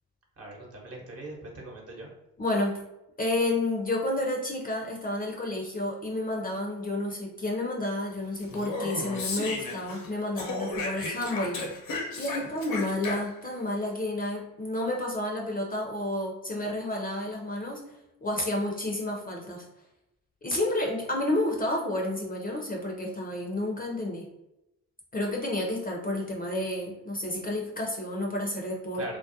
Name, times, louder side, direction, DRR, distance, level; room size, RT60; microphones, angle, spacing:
voice 1, 0.4-2.1 12.4-12.5 28.9-29.2, right 2 dB, 40° right, -1 dB, 1.0 m, -41 dB
voice 2, 2.4-2.8 3.2-11.6 12.2-17.8 18.2-19.6 20.4-24.2 25.1-29.0, left 1 dB, 25° left, -1 dB, 0.6 m, -30 dB
Speech, 8.4-10.1 10.4-13.5, left 3 dB, 65° left, 0.7 m, -34 dB
2.4 x 2.0 x 2.7 m, 0.90 s
supercardioid pair, 60°, 36 cm